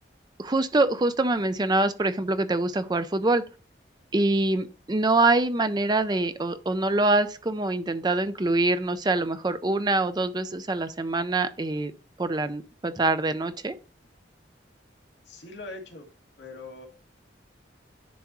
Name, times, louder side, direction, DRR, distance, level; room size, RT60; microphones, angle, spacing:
voice 1, 0.4-3.4 4.1-11.9 12.2-13.8, right 2 dB, 20° right, 0.5 m, -25 dB
voice 2, 15.3-16.1 16.4-16.9, left 3 dB, 75° left, 1.9 m, -41 dB
10.0 x 3.6 x 3.0 m
head